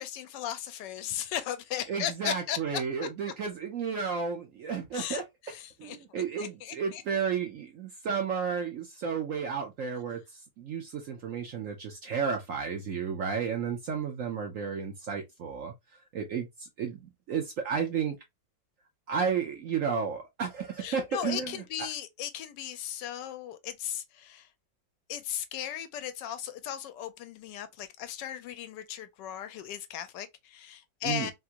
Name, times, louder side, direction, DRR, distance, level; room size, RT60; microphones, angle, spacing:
voice 1, 0.0-2.8 4.9-6.0 6.4-7.0 20.8-24.4 25.1-31.3, left 10 dB, 75° left, 1.2 m, -36 dB
voice 2, 1.9-5.2 5.8-10.2 10.6-15.7 16.1-17.0 17.3-18.2 19.1-21.6 31.0-31.3, right 6 dB, 65° right, 0.8 m, -32 dB
3.5 x 2.5 x 2.8 m
omnidirectional pair, 2.0 m